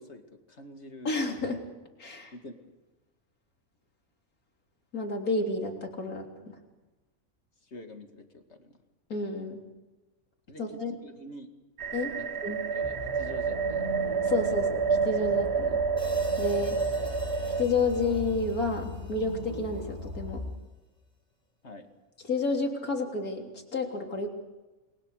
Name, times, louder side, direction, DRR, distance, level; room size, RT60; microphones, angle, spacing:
voice 1, 0.0-1.1 2.3-2.8 7.6-8.8 10.5-11.5 12.2-12.3 12.7-13.9 14.5-14.7 21.6-21.9, left 1 dB, 50° left, 5 dB, 2.6 m, -47 dB
voice 2, 1.1-1.6 2.0-2.3 4.9-6.6 9.1-9.6 10.6-11.0 11.9-12.1 12.4-12.6 14.2-15.8 16.4-16.8 17.6-20.4 22.3-24.3, left 3 dB, 85° left, 2 dB, 3.8 m, -30 dB
sound 1, 11.8-17.7, right 5 dB, 50° right, 1.2 m, -29 dB
sound 2, 12.8-20.4, left 1 dB, 30° right, 7.2 m, -39 dB
Hi-hat, 16.0-20.1, equal, 5° left, 4.6 m, -48 dB
29.0 x 22.0 x 6.6 m, 1.1 s
omnidirectional pair, 1.5 m